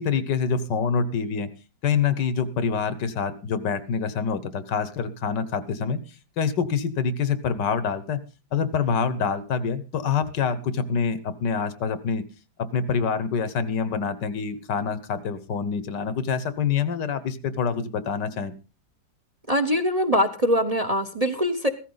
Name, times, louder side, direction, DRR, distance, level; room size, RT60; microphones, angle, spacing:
voice 1, 0.0-1.5 1.8-6.0 6.4-8.2 8.5-12.2 12.6-18.5, left 6 dB, 80° left, 14 dB, 1.7 m, -26 dB
voice 2, 19.5-21.7, equal, 25° right, 9 dB, 0.9 m, -23 dB
16.0 x 13.5 x 3.9 m, 0.33 s
omnidirectional pair, 1.9 m